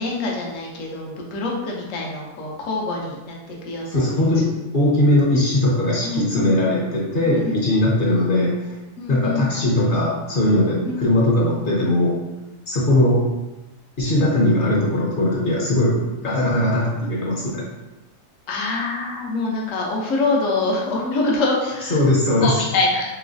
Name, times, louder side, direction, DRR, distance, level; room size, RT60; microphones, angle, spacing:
voice 1, 0.0-4.4 6.0-6.6 7.3-7.6 9.0-9.5 10.8-11.0 18.5-22.0 22.4-23.1, left 3 dB, 75° left, -1 dB, 1.0 m, -25 dB
voice 2, 3.9-4.5 4.7-8.6 9.1-12.2 12.7-13.2 14.0-17.6 21.9-22.5, left 1 dB, 45° left, -4 dB, 0.8 m, -19 dB
3.0 x 3.0 x 2.6 m, 1.0 s
omnidirectional pair, 1.4 m